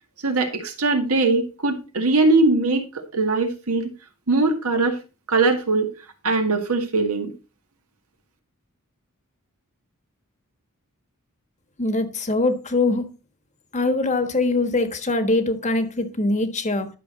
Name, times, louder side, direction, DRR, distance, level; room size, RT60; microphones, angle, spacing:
voice 1, 0.2-2.8 3.1-3.9 4.3-5.0 5.3-5.9 6.2-7.3, right 3 dB, 75° right, 2.0 m, -20 dB
voice 2, 11.8-13.1 13.7-16.9, left 2 dB, 35° left, 1.4 m, -22 dB
11.5 x 6.4 x 4.0 m
head